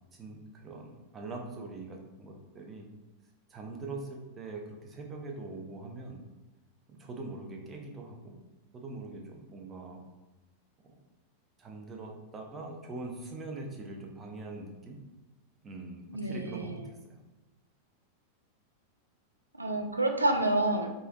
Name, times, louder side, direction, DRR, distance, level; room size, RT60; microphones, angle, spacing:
voice 1, 0.1-2.9 3.5-6.2 6.9-8.3 8.7-10.0 10.8-10.9 11.6-15.0 15.6-17.2, right 2 dB, 20° right, 1 dB, 0.5 m, -42 dB
voice 2, 16.1-16.8 19.5-20.9, right 2 dB, 85° right, 4 dB, 0.3 m, -28 dB
3.2 x 2.6 x 2.3 m, 1.1 s
figure-of-eight pair, 90°, 0 cm